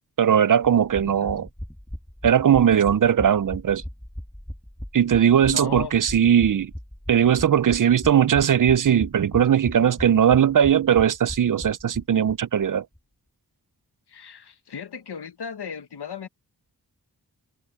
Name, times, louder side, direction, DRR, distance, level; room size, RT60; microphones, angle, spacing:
voice 1, 0.2-1.5 2.2-3.8 4.9-6.7 7.1-12.8, right 9 dB, 50° right, 0.6 m, -19 dB
sound 1, 0.6-12.4 12.6-12.7 13.0-13.1, equal, 5° left, 1.8 m, -37 dB
voice 2, 5.5-5.9 14.1-16.3, left 7 dB, 75° left, 1.5 m, -36 dB
cardioid pair, 55°, 40 cm